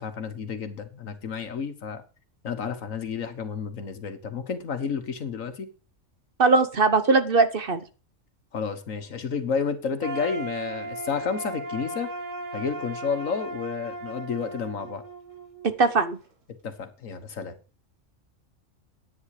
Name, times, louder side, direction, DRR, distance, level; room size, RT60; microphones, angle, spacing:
voice 1, 0.0-2.0 2.4-5.7 8.5-12.1 12.5-15.0 16.6-17.6, left 6 dB, 90° left, 1.8 m, -31 dB
voice 2, 6.4-7.8 15.8-16.2, right 3 dB, 45° right, 1.2 m, -20 dB
sound 1, 10.0-15.9, right 2 dB, 75° right, 2.5 m, -36 dB
10.0 x 9.6 x 4.9 m
omnidirectional pair, 1.3 m